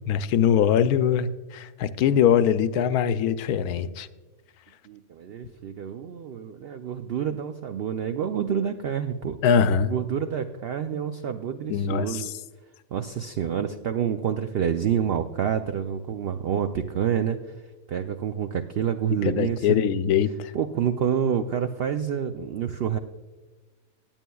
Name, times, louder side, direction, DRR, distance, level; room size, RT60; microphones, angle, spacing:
voice 1, 0.1-4.1 9.4-9.9 11.7-12.3 19.2-20.5, left 8 dB, 85° left, 12 dB, 1.1 m, -22 dB
voice 2, 4.8-9.4 9.9-12.3 12.9-17.4 17.9-19.8 20.5-23.0, right 8 dB, 80° right, 8 dB, 0.5 m, -28 dB
17.5 x 8.9 x 2.3 m, 1.2 s
omnidirectional pair, 1.6 m